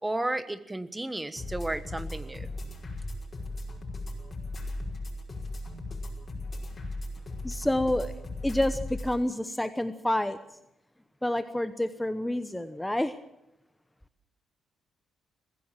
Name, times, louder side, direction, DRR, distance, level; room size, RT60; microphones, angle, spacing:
voice 1, 0.0-2.5, right 1 dB, 15° right, 14 dB, 1.2 m, -33 dB
sound 1, 1.4-9.2, left 1 dB, 30° left, 5.4 m, -37 dB
voice 2, 7.4-8.1 8.4-10.4 11.2-13.2, left 1 dB, 5° left, 11 dB, 0.9 m, -28 dB
22.5 x 15.5 x 7.5 m, 0.86 s
cardioid pair, 90°, 0 cm